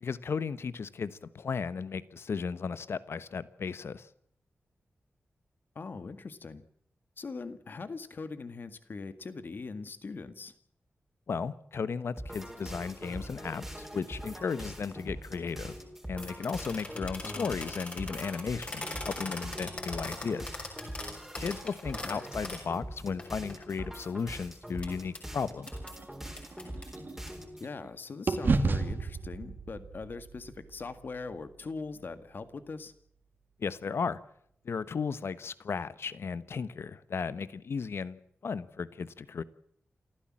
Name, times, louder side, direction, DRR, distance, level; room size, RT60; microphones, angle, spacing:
voice 1, 0.0-4.1 11.3-15.8 16.1-20.5 21.4-25.7 33.6-34.2 34.6-39.4, left 5 dB, 65° left, 1.2 m, -35 dB
voice 2, 5.8-6.6 7.2-10.5 17.2-17.6 22.0-22.2 27.6-32.9, left 4 dB, 50° left, 1.8 m, -41 dB
sound 1, 12.2-27.7, right 1 dB, 5° right, 4.0 m, -43 dB
sound 2, 16.2-22.7 23.2-23.3 23.5-24.3 24.8-24.9 25.1-25.2 25.7-25.9 26.3-27.3, left 2 dB, 30° left, 6.2 m, -41 dB
sound 3, 25.6-27.9 28.3-32.5, right 3 dB, 50° right, 2.3 m, -34 dB
28.0 x 15.0 x 7.5 m
wide cardioid pair, 180°, 4 cm